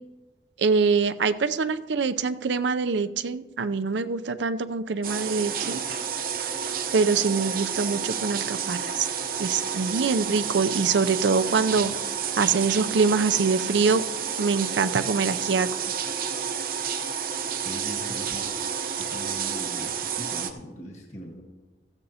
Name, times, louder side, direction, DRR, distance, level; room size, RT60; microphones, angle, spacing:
voice 1, 0.6-5.8 6.9-9.1 9.4-11.9 12.4-14.0 14.4-15.7, right 5 dB, 80° right, 12 dB, 0.5 m, -24 dB
sound 1, 5.0-20.5, right 7 dB, 50° right, 0.8 m, -30 dB
voice 2, 17.6-18.6 19.0-21.4, equal, 40° left, 0 dB, 1.5 m, -40 dB
16.0 x 14.0 x 2.8 m, 1.2 s
head